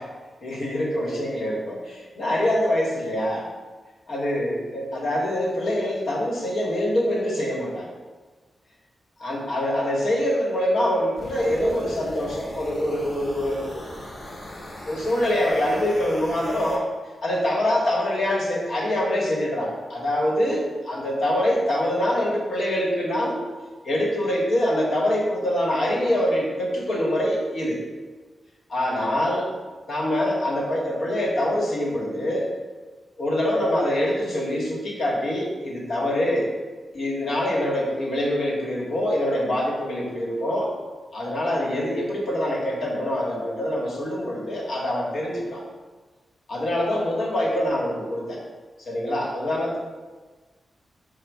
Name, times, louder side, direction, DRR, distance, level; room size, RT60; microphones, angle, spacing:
voice 1, 0.4-3.5 4.1-8.0 9.2-13.9 14.9-16.9 17.2-23.4 23.8-27.8 28.7-29.5 29.9-32.5 33.2-36.5 36.9-40.7 41.1-45.6 46.5-48.4 48.9-49.8, left 1 dB, 75° left, -4 dB, 1.2 m, -24 dB
sound 1, 11.2-16.8, left 1 dB, 30° left, 0.8 m, -39 dB
5.1 x 2.2 x 4.6 m, 1.3 s
wide cardioid pair, 120°, 0 cm